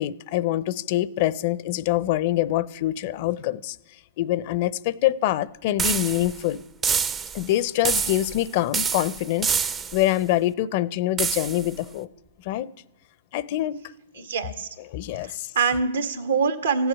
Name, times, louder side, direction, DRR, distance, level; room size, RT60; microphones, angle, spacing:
voice 1, 0.0-3.8 4.2-6.6 7.3-12.1 12.4-12.7 13.3-13.8 14.2-14.3 14.9-15.5, left 14 dB, 45° left, 20 dB, 0.6 m, -25 dB
sound 1, 5.8-6.4 6.8-7.5 7.8-8.4 8.7-10.1 11.2-11.7, right 6 dB, 20° right, 0.5 m, -26 dB
voice 2, 14.2-14.7 15.2-16.9, right 5 dB, 85° right, 8 dB, 1.7 m, -24 dB
15.0 x 8.0 x 9.8 m, 1.1 s
hypercardioid pair, 135°, 0 cm